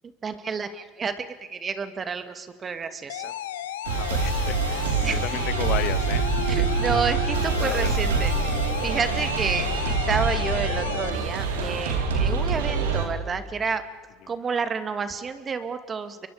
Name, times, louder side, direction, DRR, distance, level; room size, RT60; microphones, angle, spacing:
voice 1, 0.2-3.3 5.0-5.2 6.4-8.6 8.8-13.8 14.3-16.3, right 5 dB, 30° right, 10 dB, 2.3 m, -30 dB
sound 1, 3.1-11.1, left 12 dB, 85° left, 1.1 m, -34 dB
sound 2, 3.8-13.1, right 4 dB, 90° right, 4.2 m, -25 dB
voice 2, 3.9-6.2 7.6-7.9, left 13 dB, 60° left, 15 dB, 1.1 m, -33 dB
29.5 x 23.0 x 5.1 m, 1.4 s
hypercardioid pair, 85°, 0 cm